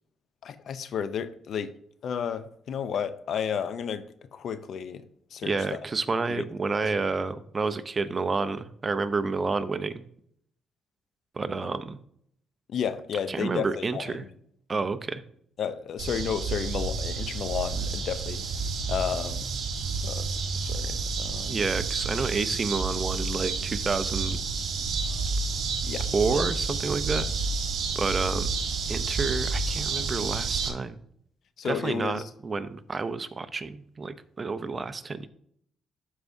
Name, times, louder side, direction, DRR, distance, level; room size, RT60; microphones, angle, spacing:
voice 1, 0.4-1.7 2.0-4.1 4.3-5.0 5.3-5.8 6.3-6.4 12.7-14.3 15.6-18.4 18.9-19.4 20.0-20.3 20.6-21.6 25.8-26.1 26.3-26.4 31.6-32.2, left 7 dB, 65° left, 0.6 m, -32 dB
voice 2, 5.4-10.0 11.3-12.0 13.3-14.2 14.7-15.2 21.5-24.4 26.1-27.3 27.9-28.5 28.9-31.0 31.6-35.3, right 4 dB, 30° right, 0.6 m, -29 dB
sound 1, 16.0-30.7, right 4 dB, 70° right, 1.6 m, -30 dB
12.0 x 4.7 x 2.6 m
cardioid pair, 90°, 0 cm